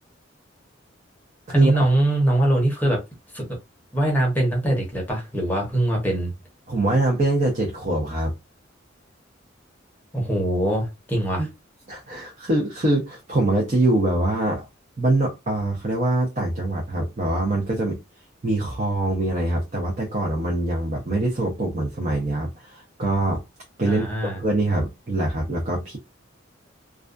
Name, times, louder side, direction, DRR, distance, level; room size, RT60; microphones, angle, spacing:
voice 1, 1.5-3.0 3.3-3.5 3.9-6.3 10.1-11.4 23.8-24.4, right 1 dB, 10° left, 0.8 m, -22 dB
voice 2, 6.7-8.3 11.4-11.5 11.9-14.7 15.0-18.0 18.4-23.4 23.8-24.1 24.4-26.0, right 2 dB, 35° right, 0.6 m, -23 dB
2.4 x 2.2 x 2.4 m
head